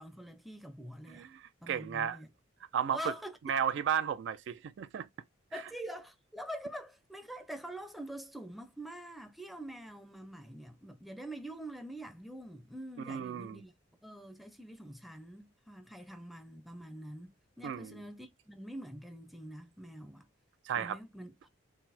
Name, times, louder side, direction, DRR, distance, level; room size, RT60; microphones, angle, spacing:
voice 1, 0.0-1.3 1.6-2.3 2.9-3.4 5.5-13.7 14.0-20.3 20.7-21.3, right 1 dB, ahead, 0.5 m, -45 dB
voice 2, 1.1-2.2 2.7-3.1 3.5-5.1 13.0-13.6 17.6-18.0 20.7-21.0, right 8 dB, 65° right, 0.3 m, -34 dB
4.0 x 2.0 x 4.1 m
head